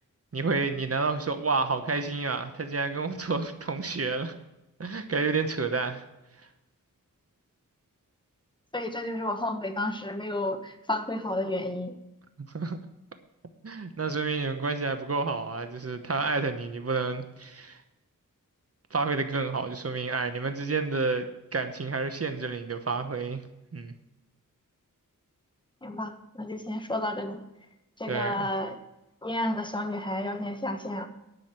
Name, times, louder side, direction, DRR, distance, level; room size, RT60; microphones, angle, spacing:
voice 1, 0.3-4.3 4.8-6.0 12.5-12.8 13.6-17.8 18.9-23.4 23.7-23.9 28.1-28.5, right 4 dB, 45° right, 8 dB, 1.0 m, -30 dB
voice 2, 8.7-12.0 25.8-27.4 28.0-28.8 29.2-31.1, left 1 dB, 15° left, 6 dB, 1.3 m, -31 dB
10.5 x 6.3 x 7.6 m, 0.96 s
wide cardioid pair, 95°, 33 cm